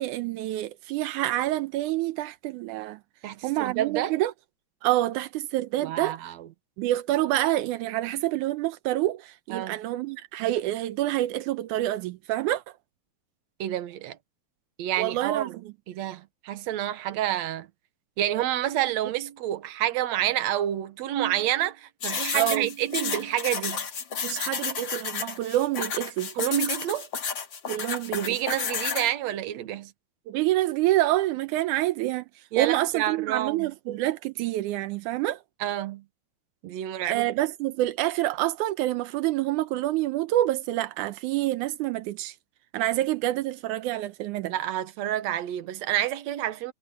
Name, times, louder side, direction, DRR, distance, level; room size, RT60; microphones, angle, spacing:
voice 1, 0.0-3.0 3.4-4.3 4.8-6.3 6.8-12.6 15.0-15.7 22.3-22.7 24.2-26.3 27.7-28.4 30.3-32.3 32.6-35.4 37.1-42.4 42.7-44.5, right 15 dB, 85° right, 2.2 m, -27 dB
voice 2, 3.2-4.1 5.8-6.5 9.5-9.8 13.6-14.2 14.8-15.6 15.9-17.7 18.2-23.8 26.4-27.1 28.1-29.9 32.5-33.7 35.6-36.0 36.6-37.3 44.5-46.7, right 12 dB, 70° right, 2.3 m, -29 dB
sound 1, 22.0-29.1, left 6 dB, 45° left, 2.2 m, -31 dB
omnidirectional pair, 3.5 m